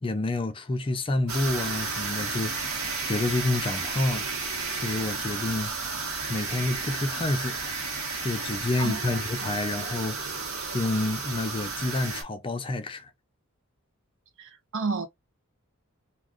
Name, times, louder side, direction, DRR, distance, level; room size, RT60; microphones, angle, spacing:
voice 1, 0.0-2.5 3.0-4.3 4.7-5.7 6.3-7.6 8.2-10.4 10.7-13.1, left 2 dB, 25° left, 0.4 m, -28 dB
sound 1, 1.3-12.2, right 4 dB, 85° right, 1.1 m, -32 dB
voice 2, 8.8-9.5 14.4-15.1, right 4 dB, 60° right, 0.5 m, -32 dB
2.4 x 2.4 x 3.5 m
head